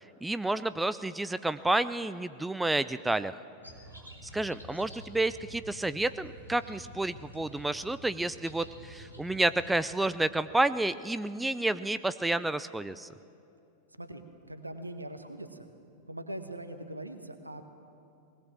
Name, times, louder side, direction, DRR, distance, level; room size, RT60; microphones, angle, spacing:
voice 1, 0.2-3.4 4.3-13.1, right 2 dB, 5° right, 14 dB, 0.5 m, -30 dB
sound 1, 3.6-9.8, equal, 90° left, 2.8 m, -49 dB
voice 2, 14.0-15.7 16.1-17.6, right 1 dB, 85° right, 8 dB, 1.4 m, -41 dB
20.0 x 19.0 x 7.5 m, 2.6 s
figure-of-eight pair, 90°, 0 cm